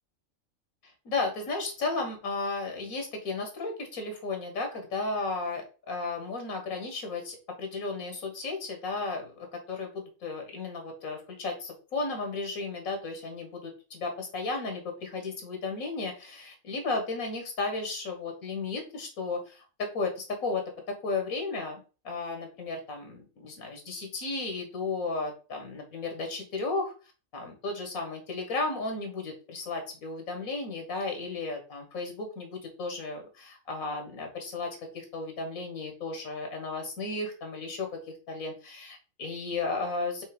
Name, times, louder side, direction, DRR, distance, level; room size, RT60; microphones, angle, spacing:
voice 1, 0.8-26.9 27.3-34.7 34.9-38.0 38.3-40.2, left 3 dB, 90° left, 3 dB, 1.9 m, -34 dB
5.6 x 3.3 x 5.2 m, 0.34 s
omnidirectional pair, 1.4 m